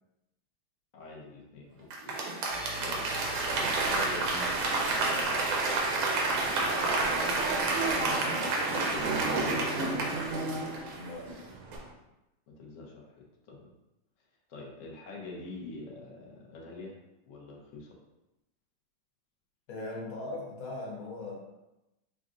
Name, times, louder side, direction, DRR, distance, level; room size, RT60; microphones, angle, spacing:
voice 1, 0.9-2.2 2.8-3.1 3.6-4.6 4.9-6.1 6.9-10.0 12.6-13.7 14.5-17.0 17.3-18.0, left 3 dB, 55° left, -2 dB, 0.9 m, -45 dB
Applause / Crowd, 1.9-11.3 11.7-11.8, right 3 dB, 90° right, 1.5 m, -29 dB
sound 1, 2.5-7.6, right 2 dB, 5° right, 0.6 m, -45 dB
sound 2, 3.1-11.9, right 3 dB, 70° right, 1.1 m, -41 dB
voice 2, 10.9-11.3 19.7-21.3, left 2 dB, 75° left, -2 dB, 1.6 m, -39 dB
6.1 x 2.5 x 2.5 m, 0.94 s
omnidirectional pair, 2.2 m